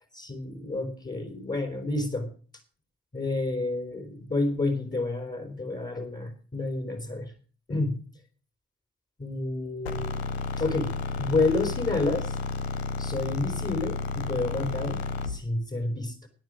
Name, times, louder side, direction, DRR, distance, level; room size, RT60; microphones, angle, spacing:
voice 1, 0.1-2.3 3.1-7.3 7.7-8.0 9.2-10.1 10.6-10.9 11.2-12.4 13.0-16.3, left 2 dB, 25° left, 6 dB, 3.5 m, -29 dB
sound 1, 9.9-15.4, left 4 dB, 90° left, 0.9 m, -32 dB
12.5 x 9.8 x 6.2 m, 0.41 s
hypercardioid pair, 45°, 30 cm